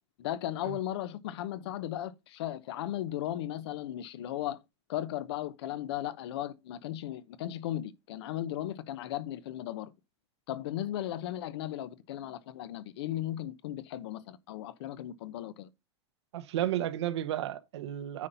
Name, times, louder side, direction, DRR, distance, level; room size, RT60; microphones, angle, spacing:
voice 1, 0.2-4.6 4.9-9.9 10.5-15.7, left 12 dB, 65° left, 0.9 m, -36 dB
voice 2, 16.3-18.3, right 12 dB, 80° right, 1.2 m, -32 dB
9.6 x 4.2 x 5.5 m
supercardioid pair, 155°, 14 cm